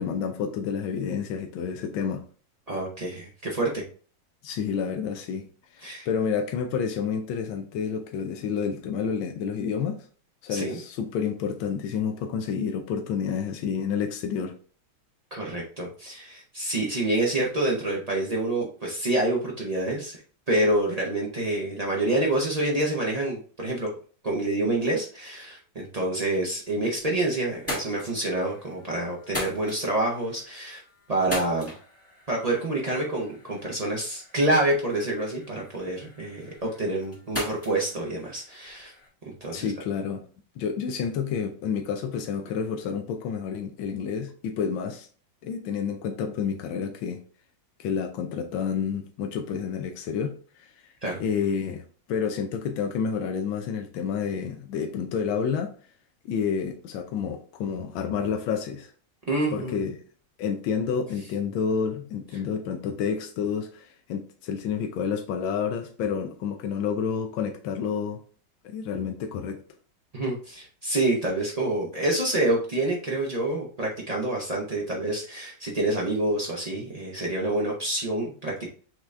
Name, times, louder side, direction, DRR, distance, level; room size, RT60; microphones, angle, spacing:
voice 1, 0.0-2.2 4.4-5.5 5.7-10.0 10.4-14.5 39.5-40.2 40.6-45.1 45.4-47.2 47.8-50.7 51.2-55.7 56.2-58.9 59.5-60.0 60.4-68.2 68.6-69.6, left 6 dB, 85° left, 5 dB, 1.4 m, -29 dB
voice 2, 2.7-3.8 5.8-6.1 10.5-10.8 15.3-20.2 20.5-23.9 24.2-30.8 31.1-31.7 32.3-38.9 39.4-39.7 51.0-51.2 59.3-59.8 70.1-78.7, right 2 dB, 80° right, -2 dB, 0.3 m, -27 dB
sound 1, 26.6-27.1 27.5-39.1, left 1 dB, 10° left, 1.4 m, -40 dB
5.9 x 3.3 x 2.5 m, 0.41 s
omnidirectional pair, 2.1 m